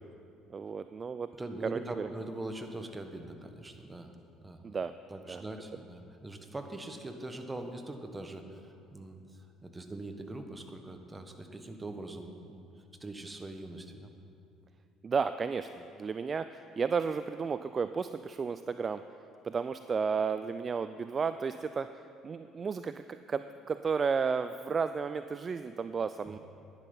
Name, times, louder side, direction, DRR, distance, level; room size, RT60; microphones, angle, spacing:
voice 1, 0.5-1.3 1.6-2.1 4.6-4.9 5.3-5.4 15.0-19.0 19.4-21.9 22.2-26.4, right 5 dB, 40° right, 11 dB, 0.4 m, -33 dB
voice 2, 1.3-4.1 4.4-4.6 5.1-9.2 9.6-12.7 13.0-14.1 26.2-26.4, right 2 dB, 20° right, 6 dB, 1.4 m, -42 dB
10.5 x 10.5 x 5.6 m, 2.6 s
hypercardioid pair, 55°, 0 cm